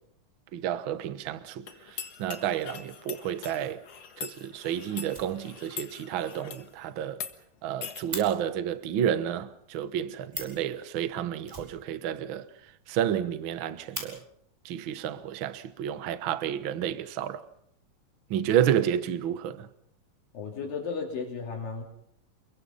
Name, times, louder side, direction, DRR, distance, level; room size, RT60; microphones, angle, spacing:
voice 1, 0.5-1.6 2.2-3.8 4.2-7.2 7.6-12.5 12.9-14.2 14.6-17.4 18.3-19.7, right 10 dB, 65° right, 1.2 m, -30 dB
sound 1, 1.7-6.7 7.1-7.3 7.8-8.0, left 8 dB, 55° left, 2.4 m, -42 dB
Fire, 5.0-5.9 6.2-6.3 6.6-6.7 6.9-7.0 7.3-8.3 10.0-10.1 10.3-10.7 11.4-12.4 12.7-12.8 13.1-13.2 13.5-14.1 15.1-15.2 15.8-16.4, right 1 dB, 10° right, 4.9 m, -41 dB
voice 2, 20.3-21.8, left 5 dB, 75° left, 4.5 m, -34 dB
28.5 x 22.0 x 5.7 m
omnidirectional pair, 4.0 m